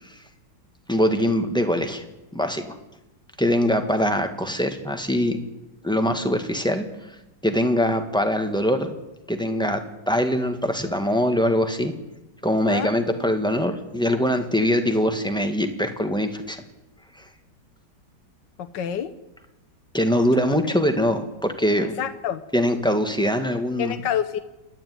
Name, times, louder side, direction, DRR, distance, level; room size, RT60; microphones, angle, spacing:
voice 1, 0.9-2.0 2.3-2.8 3.4-5.4 5.8-6.8 7.4-8.9 9.3-9.8 10.1-11.9 12.4-16.6 19.9-21.9 22.5-24.0, equal, 5° left, 6 dB, 1.7 m, -22 dB
voice 2, 18.6-19.1 22.0-22.4 23.8-24.4, left 9 dB, 80° left, 8 dB, 1.6 m, -27 dB
28.5 x 11.0 x 9.5 m, 0.99 s
omnidirectional pair, 1.9 m